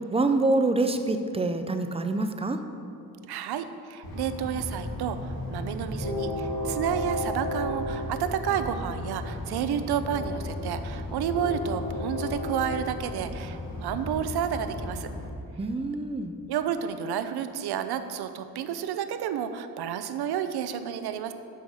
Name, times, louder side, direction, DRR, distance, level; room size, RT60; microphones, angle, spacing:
voice 1, 0.1-2.6 15.6-16.4, right 2 dB, 15° right, 7 dB, 0.4 m, -26 dB
voice 2, 3.2-15.1 16.5-21.3, right 8 dB, 85° right, 10 dB, 0.6 m, -31 dB
Train, 4.0-15.3, left 1 dB, 70° left, 2.0 m, -33 dB
12.0 x 5.6 x 4.8 m, 2.6 s
wide cardioid pair, 160°, 37 cm